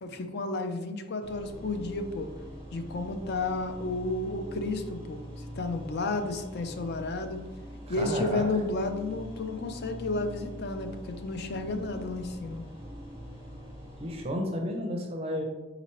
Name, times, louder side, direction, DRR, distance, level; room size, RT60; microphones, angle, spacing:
voice 1, 0.0-2.3 2.7-5.2 5.6-7.4 7.9-12.6, left 2 dB, 55° left, 7 dB, 0.5 m, -32 dB
sound 1, 1.2-14.2, equal, 30° left, 1.1 m, -43 dB
voice 2, 7.9-8.5 14.0-15.4, equal, 30° right, 2 dB, 0.5 m, -32 dB
4.3 x 3.8 x 3.0 m, 1.1 s
head